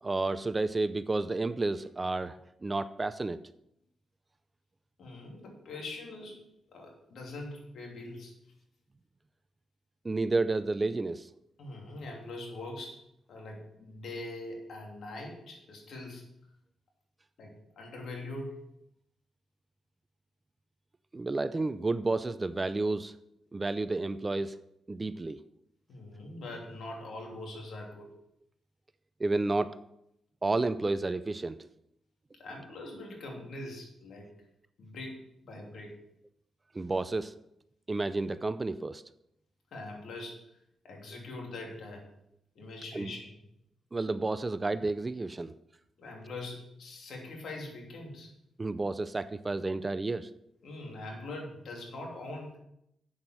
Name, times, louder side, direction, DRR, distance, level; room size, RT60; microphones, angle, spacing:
voice 1, 0.0-3.4 10.0-11.3 21.1-23.1 23.5-24.6 24.9-25.4 29.2-29.8 30.4-31.7 36.7-37.3 37.9-39.0 42.9-43.1 43.9-45.5 48.6-50.3, right 3 dB, 25° right, 14 dB, 0.5 m, -31 dB
voice 2, 5.0-6.4 6.7-8.3 11.6-13.0 13.3-16.2 17.4-18.7 25.9-28.1 32.4-34.3 34.8-35.9 39.7-40.4 40.8-42.0 42.5-43.4 46.0-48.3 50.6-52.6, left 2 dB, 70° left, 0 dB, 2.9 m, -42 dB
8.0 x 7.4 x 6.1 m, 0.78 s
cardioid pair, 80°, 0 cm